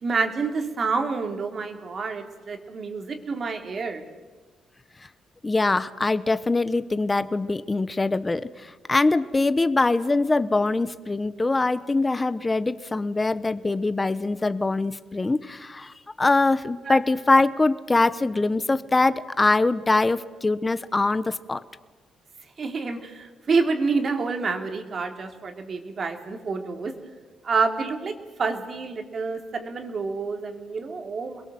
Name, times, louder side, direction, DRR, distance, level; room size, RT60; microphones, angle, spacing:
voice 1, 0.0-4.0 16.9-17.0 22.6-26.9 27.4-31.4, right 4 dB, 40° right, 6 dB, 3.2 m, -28 dB
voice 2, 5.4-21.6, left 3 dB, 20° left, 14 dB, 1.0 m, -23 dB
28.0 x 21.5 x 7.8 m, 1.3 s
cardioid pair, 125°, 0 cm